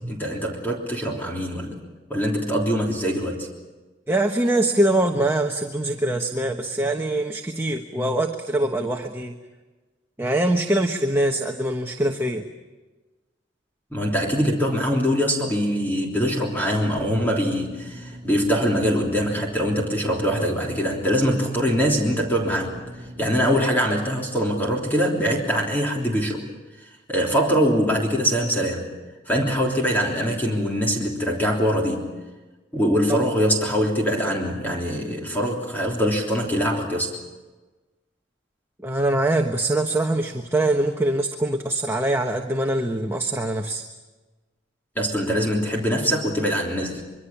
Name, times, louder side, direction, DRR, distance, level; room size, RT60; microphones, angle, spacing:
voice 1, 0.1-1.8 2.1-3.5 13.9-22.8 23.2-26.4 27.1-28.9 29.3-32.1 32.7-37.1 44.9-47.0, equal, 10° left, -1 dB, 3.4 m, -23 dB
voice 2, 4.1-9.4 10.2-12.4 33.1-33.2 38.8-43.8, right 1 dB, 15° right, 3 dB, 1.2 m, -23 dB
sound 1, 16.8-23.6, right 1 dB, 45° right, 4.1 m, -41 dB
25.0 x 23.5 x 7.2 m, 1.2 s
head